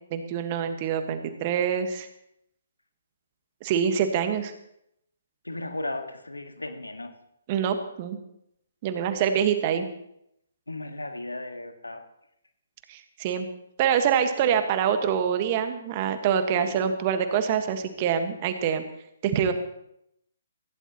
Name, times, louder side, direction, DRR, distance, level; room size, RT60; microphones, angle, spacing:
voice 1, 0.1-2.1 3.6-4.5 7.5-8.2 8.8-9.9 12.9-13.5 13.8-18.8 19.2-19.5, right 8 dB, 35° right, 8 dB, 1.6 m, -25 dB
voice 2, 5.4-7.1 10.7-12.0 16.5-16.8, left 2 dB, 85° left, 6 dB, 1.7 m, -35 dB
17.0 x 16.0 x 3.1 m, 0.77 s
figure-of-eight pair, 135°, 0 cm